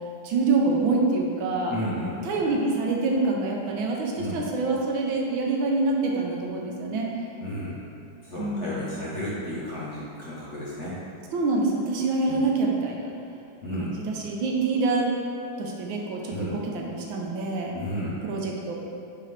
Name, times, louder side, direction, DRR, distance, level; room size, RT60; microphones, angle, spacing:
voice 1, 0.2-1.8 2.2-7.1 8.4-9.0 11.3-13.1 13.9-15.1 15.6-17.7 18.2-18.8, right 3 dB, 75° right, -1 dB, 1.5 m, -26 dB
voice 2, 1.7-2.1 4.2-4.4 7.4-7.8 8.2-11.0 12.2-12.4 13.6-13.9 16.3-16.5 17.7-18.2, equal, 45° left, -8 dB, 1.1 m, -32 dB
8.5 x 3.8 x 3.3 m, 2.7 s
omnidirectional pair, 2.2 m